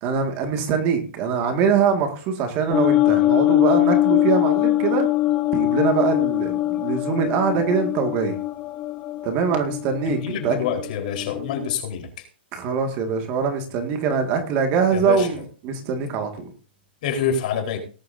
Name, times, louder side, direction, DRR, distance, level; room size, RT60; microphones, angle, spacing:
voice 1, 0.0-5.1 5.5-8.3 9.2-10.6 12.5-15.4 15.6-16.5, right 6 dB, 30° right, 5 dB, 2.0 m, -23 dB
sound 1, 2.7-11.7, left 16 dB, 20° left, 0.7 m, -22 dB
voice 2, 10.1-12.2 14.9-15.3 17.0-17.8, left 7 dB, 45° left, 2 dB, 4.3 m, -26 dB
19.0 x 11.0 x 2.7 m, 0.38 s
hypercardioid pair, 160°, 6 cm